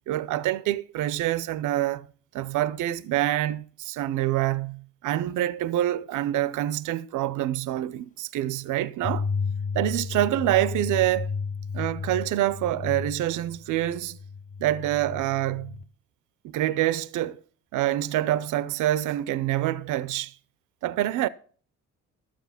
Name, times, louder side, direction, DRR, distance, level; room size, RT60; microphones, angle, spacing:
voice 1, 0.1-2.1 2.3-9.3 9.7-11.3 11.7-14.2 14.6-15.8 16.5-17.4 17.7-20.3 20.8-21.3, right 14 dB, 80° right, 0.6 m, -26 dB
sound 1, 9.0-15.8, left 5 dB, 25° left, 0.7 m, -33 dB
12.5 x 7.6 x 5.7 m
cardioid pair, 90°, 30 cm